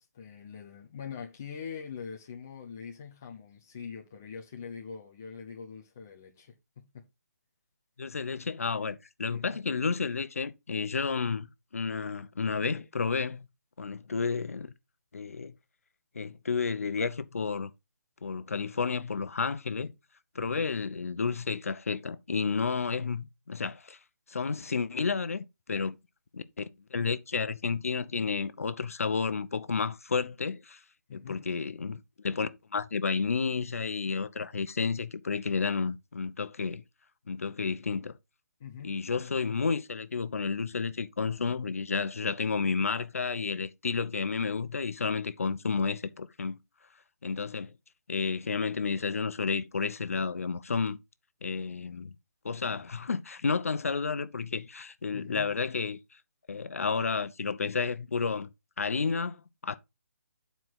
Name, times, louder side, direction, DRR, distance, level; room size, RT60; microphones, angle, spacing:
voice 1, 0.0-7.0 9.3-9.6 31.1-31.4 38.6-38.9 55.1-55.5, left 6 dB, 10° left, 0.4 m, -43 dB
voice 2, 8.0-11.5 11.7-13.5 13.8-14.7 15.1-15.5 16.1-17.7 18.2-19.9 20.3-24.0 24.3-26.0 26.3-26.6 26.9-30.8 31.1-36.8 37.3-38.1 38.8-46.6 47.2-47.7 48.1-51.0 51.4-52.1 52.4-56.0 56.5-58.5 58.8-59.8, left 5 dB, 55° left, 0.8 m, -31 dB
9.2 x 4.6 x 4.0 m
hypercardioid pair, 180°, 9 cm